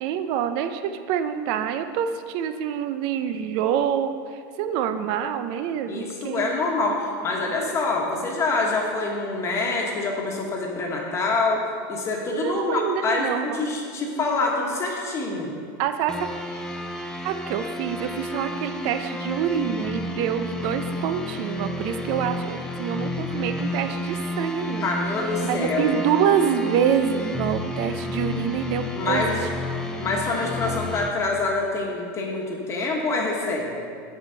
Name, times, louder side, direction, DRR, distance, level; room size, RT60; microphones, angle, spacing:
voice 1, 0.0-6.4 12.3-13.6 15.8-16.3 17.2-24.9 25.4-29.2 30.6-30.8, right 8 dB, 50° right, 9 dB, 0.5 m, -26 dB
voice 2, 5.9-11.6 11.9-15.5 24.8-26.1 28.9-29.3 30.0-33.8, left 3 dB, 25° left, -1 dB, 1.3 m, -26 dB
sound 1, 16.1-31.1, left 1 dB, 5° left, 0.5 m, -31 dB
7.9 x 6.4 x 3.9 m, 2.3 s
supercardioid pair, 135°, 10 cm